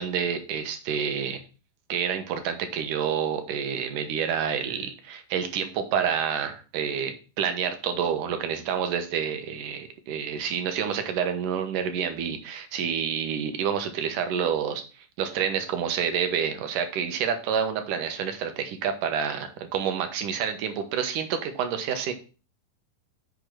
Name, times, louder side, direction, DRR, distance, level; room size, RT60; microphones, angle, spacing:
voice 1, 0.0-1.4 1.9-22.1, right 7 dB, 70° right, 7 dB, 2.5 m, -28 dB
7.0 x 5.3 x 6.1 m, 0.34 s
omnidirectional pair, 4.1 m